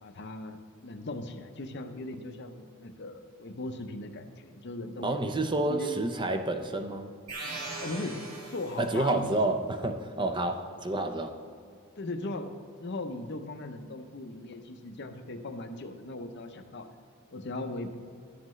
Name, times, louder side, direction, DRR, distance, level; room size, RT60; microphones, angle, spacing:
voice 1, 0.0-5.1 5.7-6.0 7.8-8.2 8.5-9.3 12.0-12.5 12.8-16.9 17.3-18.0, left 2 dB, 50° left, 6 dB, 0.7 m, -38 dB
voice 2, 5.0-7.1 8.8-11.4, right 2 dB, 20° right, 6 dB, 0.5 m, -29 dB
sound 1, 7.3-9.2, right 2 dB, 90° right, 1.8 m, -40 dB
12.5 x 7.6 x 3.1 m, 2.2 s
head